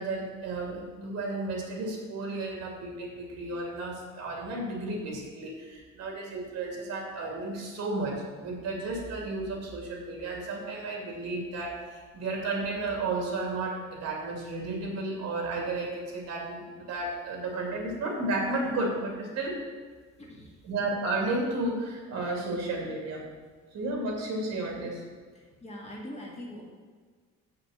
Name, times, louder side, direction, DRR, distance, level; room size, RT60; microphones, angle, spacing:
voice 1, 0.0-19.6 20.6-23.2 23.7-25.0, right 2 dB, 60° right, -1 dB, 2.6 m, -33 dB
voice 2, 20.2-20.6 25.4-26.7, equal, 20° left, -2 dB, 1.7 m, -43 dB
7.4 x 6.5 x 7.3 m, 1.5 s
cardioid pair, 170°, 29 cm